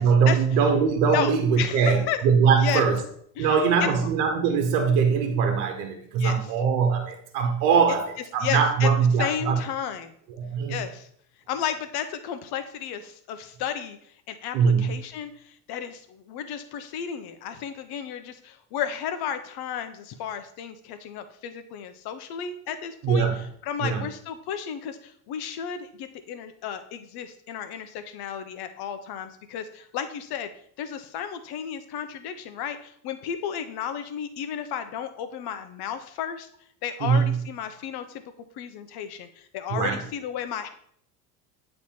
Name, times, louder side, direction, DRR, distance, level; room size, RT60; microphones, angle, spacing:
voice 1, 0.0-3.0 3.4-9.6 10.4-10.8 14.5-15.0 23.0-23.4 23.8-24.0 37.0-37.4 39.7-40.0, right 6 dB, 70° right, 4 dB, 1.2 m, -22 dB
voice 2, 1.1-2.2 2.6-2.8 3.4-3.5 3.8-3.9 6.2-6.5 8.4-8.9 9.2-10.1 10.7-11.1 11.5-14.0 14.3-30.5 30.8-36.5 36.8-38.2 38.5-40.7, left 9 dB, 55° left, 10 dB, 0.9 m, -33 dB
8.3 x 3.3 x 4.3 m, 0.64 s
hypercardioid pair, 70°, 46 cm